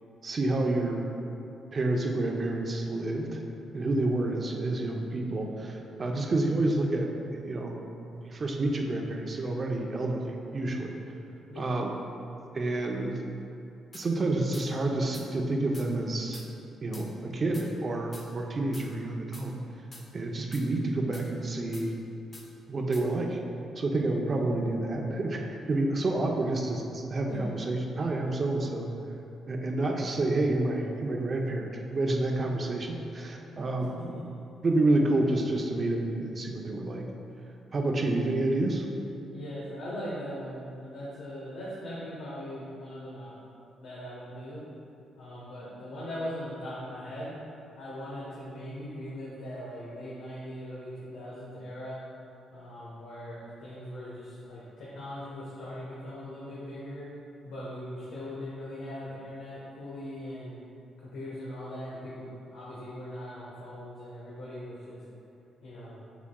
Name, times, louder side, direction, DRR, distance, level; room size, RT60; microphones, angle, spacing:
voice 1, 0.2-1.0 1.7-3.4 3.7-7.1 7.3-7.8 8.1-11.0 11.6-11.9 12.5-13.2 13.9-16.4 16.8-19.5 20.1-21.9 22.7-23.4 23.8-25.4 25.7-28.9 29.5-34.0 34.6-37.0 37.7-38.8, right 2 dB, 40° right, 1 dB, 0.7 m, -29 dB
sound 1, 13.9-14.1 14.5-14.7 15.1-15.3 15.7-15.9 16.3-16.5 16.9-17.1 17.5-17.7 18.1-18.3 18.7-18.9 19.3-19.5 19.9-20.1 20.5-20.7 21.1-21.3 21.7-21.9 22.3-22.5 22.9-23.1, left 2 dB, 30° left, 0.9 m, -47 dB
voice 2, 33.8-34.2 39.3-43.3 43.8-44.6 45.2-47.4 47.7-52.0 52.5-57.1 57.4-60.6 61.1-65.0 65.6-66.0, equal, 80° left, -8 dB, 1.2 m, -40 dB
7.1 x 6.1 x 2.3 m, 2.7 s
cardioid pair, 90°, 0 cm